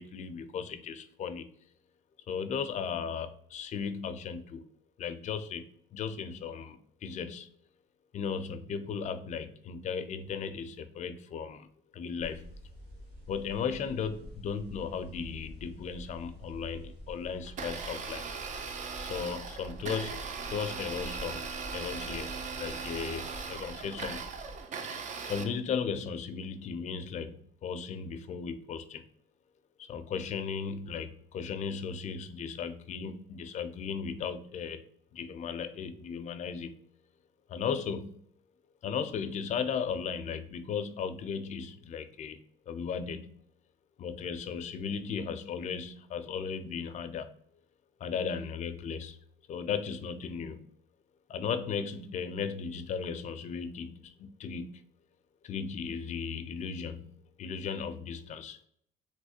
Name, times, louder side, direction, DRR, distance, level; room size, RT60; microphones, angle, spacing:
voice 1, 0.0-1.5 2.3-4.6 5.0-7.5 8.1-11.7 11.9-12.5 13.3-18.3 19.0-21.5 21.7-24.3 24.8-24.9 25.2-29.0 29.8-34.8 35.1-36.8 37.5-38.2 38.8-42.4 42.7-43.3 44.0-47.3 48.0-49.2 49.5-50.6 51.3-54.8 55.4-57.1 57.4-58.6, left 6 dB, 45° left, 0.4 m, -36 dB
sound 1, 12.2-24.6, equal, 85° right, 1.3 m, -48 dB
Domestic sounds home sounds, 17.4-25.4, right 5 dB, 45° right, 0.5 m, -39 dB
3.2 x 3.0 x 2.7 m
cardioid pair, 110°, 17 cm